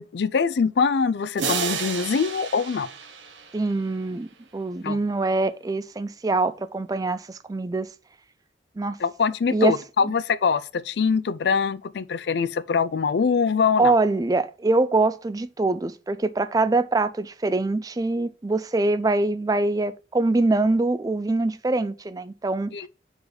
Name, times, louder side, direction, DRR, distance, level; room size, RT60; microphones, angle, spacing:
voice 1, 0.0-2.9 4.8-5.0 9.0-13.9 22.7-22.9, left 5 dB, 65° left, 0.4 m, -23 dB
sound 1, 1.4-4.1, right 6 dB, 90° right, 0.9 m, -31 dB
voice 2, 3.5-4.3 4.5-7.9 8.8-9.0 9.5-9.7 13.8-22.7, right 2 dB, 20° right, 0.3 m, -24 dB
4.9 x 4.0 x 4.9 m
head